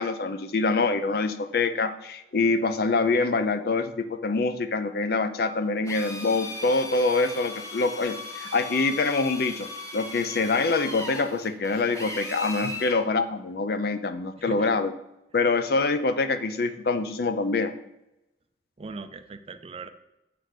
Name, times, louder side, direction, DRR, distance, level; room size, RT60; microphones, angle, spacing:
voice 1, 0.0-14.9 15.3-17.7, left 3 dB, 60° left, 10 dB, 0.5 m, -25 dB
Drill, 5.8-13.0, left 1 dB, 20° left, 0.9 m, -38 dB
voice 2, 18.8-19.9, right 3 dB, 35° right, 10 dB, 0.5 m, -39 dB
7.9 x 3.8 x 6.5 m, 0.90 s
head